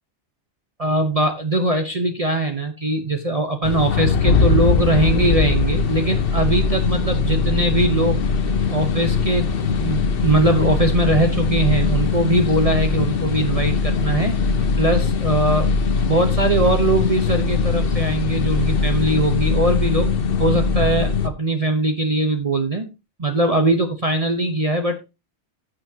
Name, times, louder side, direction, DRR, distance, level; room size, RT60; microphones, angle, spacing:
voice 1, 0.8-8.2 8.7-14.3 14.8-15.7 16.1-20.1 20.4-22.9 23.2-25.0, right 2 dB, 35° right, 5 dB, 1.1 m, -21 dB
sound 1, 3.6-21.3, left 5 dB, 55° left, 1.1 m, -21 dB
15.0 x 6.4 x 2.9 m, 0.26 s
omnidirectional pair, 1.2 m